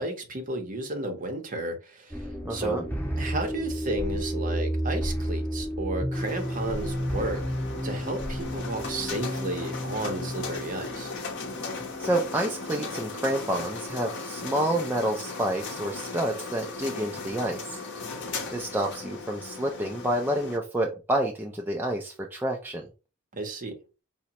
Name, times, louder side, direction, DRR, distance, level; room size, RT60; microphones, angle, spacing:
voice 1, 0.0-2.9 3.2-7.4 7.8-11.1 23.3-23.8, right 2 dB, 40° right, 0.8 m, -33 dB
sound 1, 2.1-13.7, equal, 10° left, 1.7 m, -32 dB
voice 2, 2.4-2.8 12.0-17.8 18.5-22.9, right 1 dB, 10° right, 0.4 m, -29 dB
sound 2, 6.1-20.6, left 4 dB, 55° left, 0.7 m, -37 dB
4.8 x 2.1 x 2.8 m
head